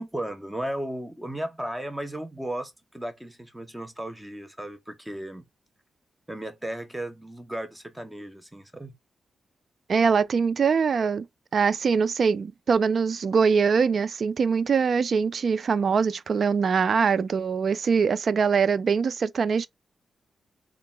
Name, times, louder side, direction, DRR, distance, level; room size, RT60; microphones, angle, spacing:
voice 1, 0.0-5.4 6.3-8.9, right 1 dB, 10° right, 1.0 m, -35 dB
voice 2, 9.9-11.3 11.5-19.7, right 5 dB, 60° right, 0.3 m, -23 dB
3.7 x 2.5 x 3.6 m
cardioid pair, 65°, 0 cm